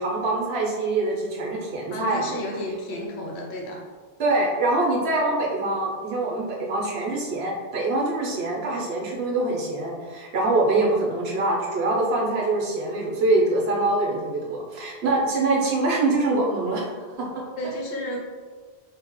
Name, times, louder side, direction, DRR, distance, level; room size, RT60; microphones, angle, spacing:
voice 1, 0.0-2.3 4.2-16.9 17.2-17.4, right 2 dB, 75° right, -2 dB, 1.1 m, -24 dB
voice 2, 1.9-3.8 17.6-18.2, equal, 85° left, -1 dB, 1.1 m, -32 dB
3.8 x 2.8 x 3.1 m, 1.5 s
omnidirectional pair, 1.1 m